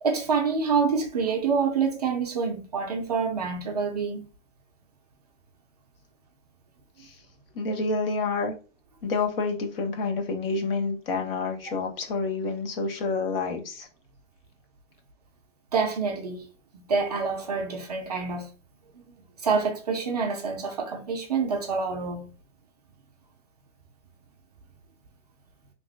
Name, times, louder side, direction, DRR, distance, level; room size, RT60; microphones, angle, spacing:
voice 1, 0.0-4.2 15.7-16.4 16.9-18.5 19.4-22.3, right 5 dB, 35° right, 0.4 m, -27 dB
voice 2, 7.5-8.5 9.0-13.9, left 3 dB, 50° left, 0.8 m, -28 dB
2.8 x 2.3 x 3.1 m
hypercardioid pair, 150°, 38 cm